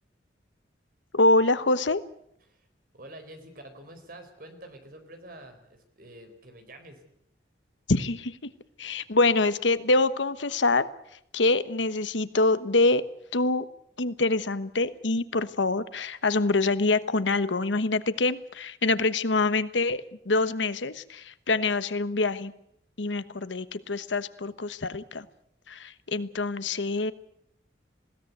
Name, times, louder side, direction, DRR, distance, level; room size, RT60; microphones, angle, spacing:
voice 1, 1.1-2.0 7.9-8.5 8.8-10.9 11.3-13.1 13.3-13.6 14.0-22.5 23.0-25.3 25.7-27.1, left 3 dB, 85° left, 14 dB, 1.2 m, -25 dB
voice 2, 2.9-7.0, right 1 dB, 50° right, 6 dB, 4.3 m, -47 dB
20.5 x 17.0 x 9.4 m, 0.74 s
head